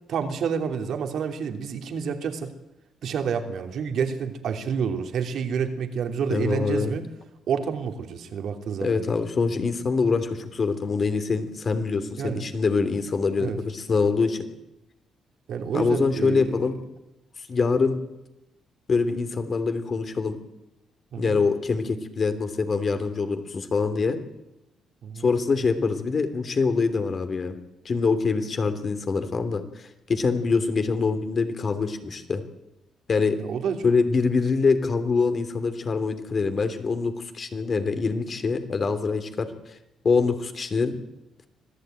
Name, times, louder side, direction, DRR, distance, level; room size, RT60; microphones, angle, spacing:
voice 1, 0.1-2.5 3.0-7.0 7.5-9.1 12.2-12.4 13.4-13.6 15.5-16.6 21.1-21.4 25.0-25.3 33.4-33.8, right 6 dB, 70° right, 5 dB, 3.0 m, -29 dB
voice 2, 6.3-6.9 8.8-14.4 15.7-16.8 17.5-18.0 18.9-20.4 21.2-24.2 25.2-27.6 27.8-29.8 30.1-32.4 33.1-33.4 33.8-39.5 40.0-41.0, left 4 dB, 40° left, 9 dB, 3.1 m, -24 dB
25.0 x 15.5 x 9.2 m, 0.94 s
cardioid pair, 90°, 0 cm